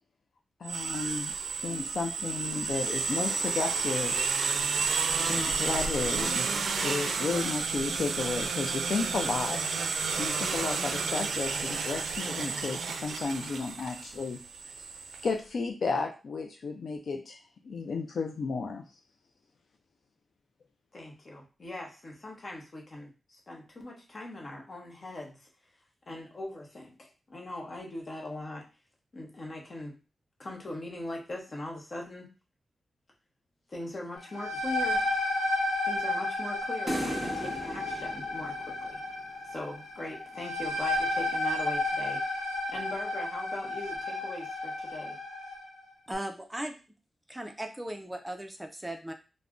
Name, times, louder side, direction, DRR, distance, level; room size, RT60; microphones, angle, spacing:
voice 1, 0.6-1.3 1.6-4.3 5.3-6.5 6.8-9.8 10.2-14.4 14.8-14.9 15.2-17.4 17.6-18.8, left 4 dB, 70° left, 4 dB, 0.3 m, -33 dB
sound 1, 0.6-15.3, right 5 dB, 90° right, 0.3 m, -31 dB
voice 2, 20.9-25.5 26.1-28.7 29.1-30.0 30.4-32.3 33.7-35.1 35.8-39.0 39.4-45.2, left 1 dB, 45° left, 0 dB, 0.8 m, -41 dB
sound 2, 34.2-45.7, left 2 dB, 85° left, 0.9 m, -32 dB
sound 3, 36.9-39.3, equal, 5° left, 0.8 m, -37 dB
voice 3, 46.1-46.8 47.3-49.1, right 1 dB, 10° right, 5 dB, 0.3 m, -37 dB
2.4 x 2.0 x 3.5 m, 0.32 s
wide cardioid pair, 90°, 0 cm